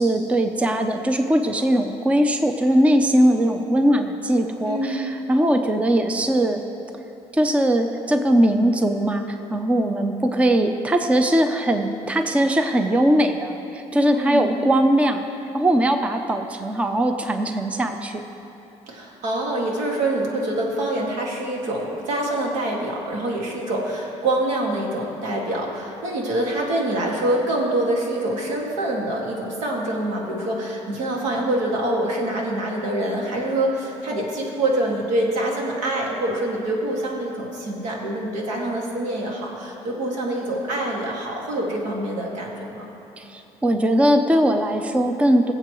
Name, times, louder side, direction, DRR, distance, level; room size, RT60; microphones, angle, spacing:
voice 1, 0.0-6.6 7.3-15.2 15.5-18.2 43.2-45.5, right 1 dB, 10° right, 6 dB, 0.5 m, -20 dB
voice 2, 4.7-5.0 14.1-14.6 18.9-42.9, right 1 dB, 85° right, -1 dB, 2.0 m, -25 dB
22.5 x 7.6 x 3.0 m, 2.9 s
cardioid pair, 140°, 12 cm